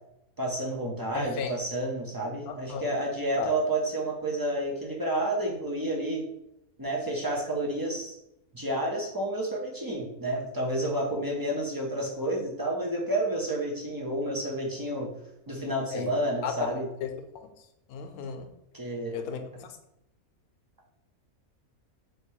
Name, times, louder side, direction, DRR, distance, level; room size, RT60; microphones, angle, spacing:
voice 1, 0.4-6.2 6.8-8.2 8.5-15.1 15.5-16.9 18.7-19.2, right 1 dB, 35° right, -2 dB, 0.3 m, -30 dB
voice 2, 1.1-1.5 2.5-2.8 3.4-3.5 15.9-16.1 16.4-16.7 17.0-17.1 17.3-17.5 17.9-18.5 19.1-19.4, left 7 dB, 90° left, 7 dB, 1.1 m, -34 dB
3.2 x 2.9 x 4.6 m, 0.84 s
omnidirectional pair, 1.5 m